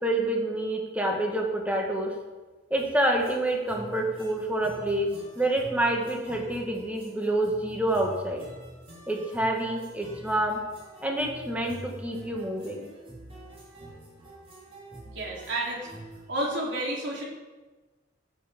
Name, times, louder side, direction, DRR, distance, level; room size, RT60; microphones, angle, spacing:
voice 1, 0.0-2.1 2.7-5.1 5.3-8.4 9.1-10.6 11.0-12.9, right 1 dB, 10° right, 0 dB, 1.7 m, -27 dB
sound 1, 2.8-16.2, right 1 dB, 30° right, 4.0 m, -46 dB
voice 2, 15.1-16.0 16.3-17.2, right 1 dB, 65° right, -3 dB, 3.7 m, -30 dB
16.0 x 7.2 x 5.3 m, 1.3 s
head